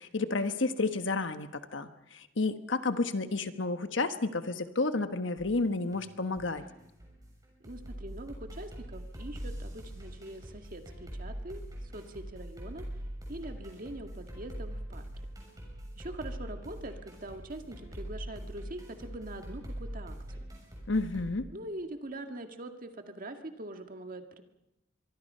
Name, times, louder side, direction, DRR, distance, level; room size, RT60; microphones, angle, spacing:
voice 1, 0.0-6.6 20.9-21.5, left 3 dB, 70° left, 9 dB, 1.3 m, -31 dB
sound 1, 5.4-21.3, equal, 20° right, 6.8 m, -43 dB
voice 2, 7.6-12.9 13.3-15.1 16.0-20.5 21.5-24.4, right 1 dB, 45° right, 6 dB, 1.9 m, -43 dB
25.0 x 24.0 x 5.6 m, 0.91 s
head